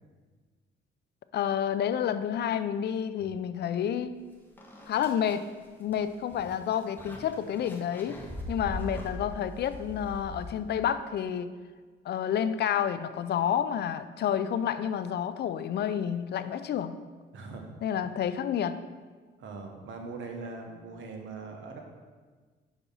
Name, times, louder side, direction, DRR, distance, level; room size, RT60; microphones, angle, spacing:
voice 1, 1.3-4.2 4.9-5.5 5.8-8.2 8.5-11.5 12.0-17.0 17.8-18.8, left 9 dB, 60° left, 12 dB, 0.4 m, -29 dB
sound 1, 4.1-4.2 4.6-10.9, left 1 dB, 10° left, 1.2 m, -41 dB
voice 2, 17.3-17.7 19.4-21.8, right 4 dB, 70° right, 3 dB, 1.1 m, -41 dB
5.9 x 4.1 x 5.4 m, 1.5 s
cardioid pair, 90°, 20 cm